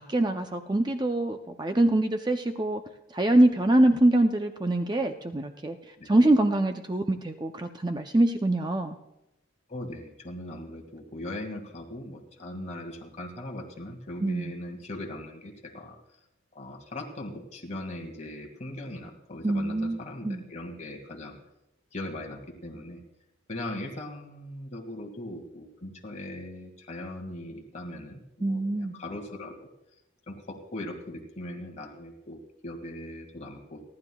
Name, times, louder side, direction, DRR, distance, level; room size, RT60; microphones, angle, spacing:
voice 1, 0.0-2.8 3.1-5.8 6.1-9.0 14.2-14.5 19.4-20.0 20.2-20.4 28.4-28.9, right 1 dB, 20° right, 6 dB, 0.5 m, -24 dB
voice 2, 9.7-16.0 16.5-21.4 21.9-23.0 23.5-29.7 30.3-33.8, left 1 dB, 35° left, 2 dB, 2.0 m, -39 dB
30.0 x 11.5 x 2.3 m, 0.90 s
head